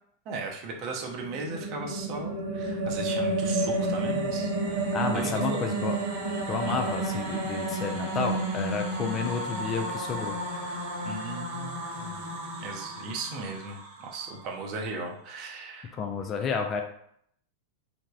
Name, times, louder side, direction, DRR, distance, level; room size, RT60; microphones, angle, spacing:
voice 1, 0.3-4.8 5.1-5.6 6.6-6.8 9.0-9.1 11.0-12.2 12.6-16.0, right 3 dB, 40° right, 0 dB, 0.6 m, -37 dB
sound 1, 1.0-14.3, right 2 dB, 65° right, 1.0 m, -31 dB
voice 2, 4.9-6.0 6.5-10.4 15.9-16.8, left 5 dB, 25° left, 4 dB, 0.3 m, -31 dB
3.3 x 2.0 x 2.3 m, 0.68 s
figure-of-eight pair, 90°, 0 cm